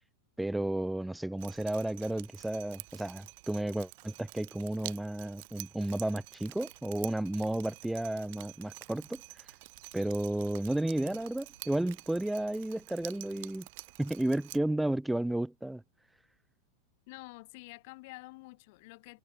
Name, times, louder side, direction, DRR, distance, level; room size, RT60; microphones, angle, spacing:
voice 1, 0.4-9.2 9.9-13.7 14.0-15.8, right 1 dB, 5° right, 0.6 m, -32 dB
Drip, 1.4-14.6, right 25 dB, 50° right, 1.4 m, -49 dB
sound 1, 6.2-13.5, right 3 dB, 80° right, 5.1 m, -66 dB
voice 2, 17.1-19.2, left 25 dB, 50° left, 6.0 m, -48 dB
figure-of-eight pair, 90°, 0 cm